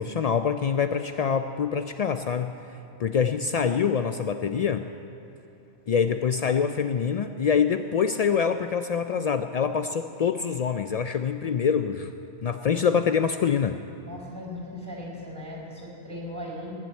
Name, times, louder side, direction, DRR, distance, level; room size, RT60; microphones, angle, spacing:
voice 1, 0.0-2.5 3.0-4.9 5.9-12.1 12.4-13.8, left 7 dB, 80° left, 8 dB, 0.3 m, -25 dB
voice 2, 14.0-16.7, left 1 dB, 20° right, -2 dB, 4.8 m, -38 dB
19.0 x 7.5 x 9.5 m, 2.8 s
omnidirectional pair, 1.2 m